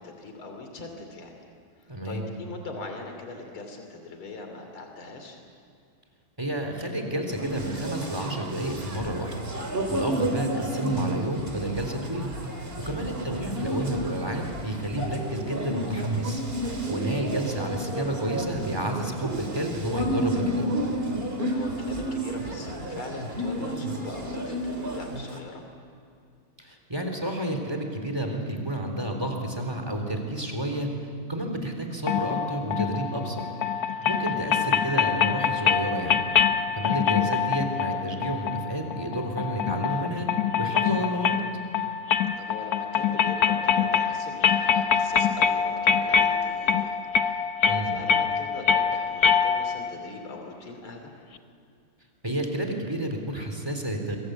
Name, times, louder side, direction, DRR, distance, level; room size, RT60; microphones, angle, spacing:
voice 1, 0.0-1.4 1.8-5.4 12.8-13.0 21.4-25.6 34.0-34.3 42.4-51.1, left 3 dB, 75° left, 4 dB, 3.8 m, -41 dB
voice 2, 1.9-2.3 6.4-9.3 9.7-12.3 12.8-16.4 16.7-20.6 26.6-30.9 31.3-33.4 34.0-36.2 36.7-40.3 40.6-41.4 47.7-47.9 52.2-54.2, right 1 dB, 10° right, 3 dB, 3.7 m, -30 dB
sound 1, 7.3-25.4, right 1 dB, 25° right, 2.7 m, -32 dB
sound 2, 32.1-49.9, left 7 dB, 55° left, 1.2 m, -25 dB
27.5 x 23.0 x 8.3 m, 2.4 s
omnidirectional pair, 2.3 m